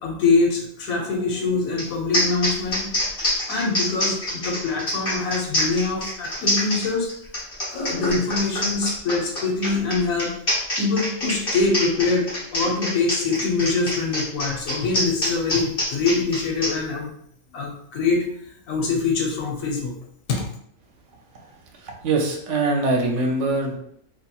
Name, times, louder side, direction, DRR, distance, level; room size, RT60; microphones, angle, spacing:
voice 1, 0.0-2.9 3.5-7.1 7.7-10.3 10.8-17.1 17.5-18.2 18.7-19.9 20.3-20.4, left 3 dB, 90° left, 0 dB, 1.1 m, -24 dB
sound 1, 1.8-1.9 2.1-16.7, left 1 dB, 45° left, 1.1 m, -25 dB
voice 2, 21.3-23.8, right 2 dB, 70° right, 1 dB, 0.9 m, -24 dB
2.8 x 2.5 x 2.3 m, 0.67 s
omnidirectional pair, 1.4 m